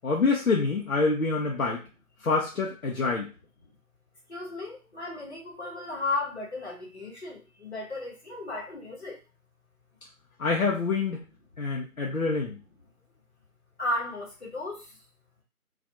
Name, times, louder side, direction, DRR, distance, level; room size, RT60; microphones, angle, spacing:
voice 1, 0.0-1.8 2.2-3.3 10.4-11.3 11.6-12.6, left 4 dB, 70° left, -2 dB, 0.7 m, -26 dB
voice 2, 4.3-9.2 13.8-14.8, left 2 dB, 50° left, -3 dB, 1.1 m, -34 dB
2.5 x 2.3 x 2.6 m, 0.29 s
figure-of-eight pair, 160°, 44 cm